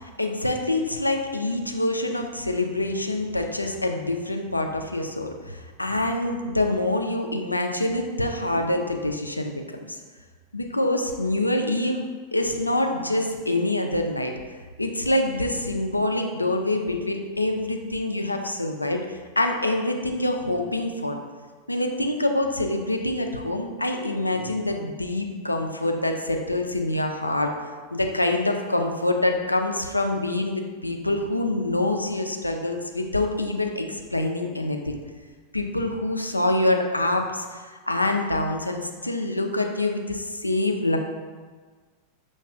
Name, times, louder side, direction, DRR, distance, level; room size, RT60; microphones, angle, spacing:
voice 1, 0.0-9.6 10.5-12.0 12.3-14.3 14.8-21.2 21.7-27.5 27.9-35.0 35.5-41.0, left 1 dB, 85° left, 4 dB, 0.3 m, -25 dB
5.6 x 2.3 x 2.3 m, 1.5 s
figure-of-eight pair, 90°, 0 cm